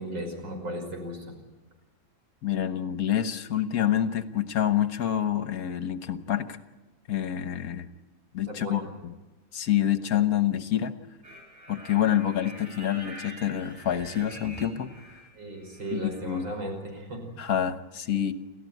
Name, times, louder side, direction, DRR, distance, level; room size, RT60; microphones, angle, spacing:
voice 1, 0.0-1.4 8.5-8.9 15.3-17.3, right 1 dB, 75° right, 3 dB, 6.4 m, -36 dB
voice 2, 2.4-6.6 7.1-7.9 8.3-9.1 9.5-10.9 11.7-14.9 15.9-16.5 17.4-18.3, left 10 dB, 55° left, 10 dB, 1.5 m, -27 dB
sound 1, 11.2-15.3 15.6-16.7, right 1 dB, 25° right, 8.0 m, -46 dB
30.0 x 14.0 x 9.3 m, 1.1 s
omnidirectional pair, 2.1 m